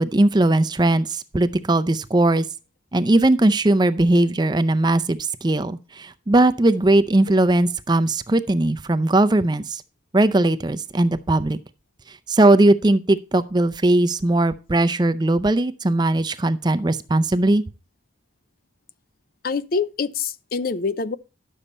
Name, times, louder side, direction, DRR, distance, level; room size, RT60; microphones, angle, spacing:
voice 1, 0.0-2.4 2.9-9.8 10.1-11.6 12.3-17.6, right 2 dB, 20° right, 0.5 m, -19 dB
voice 2, 19.4-21.2, left 5 dB, 50° left, 0.5 m, -25 dB
11.0 x 7.0 x 4.1 m
head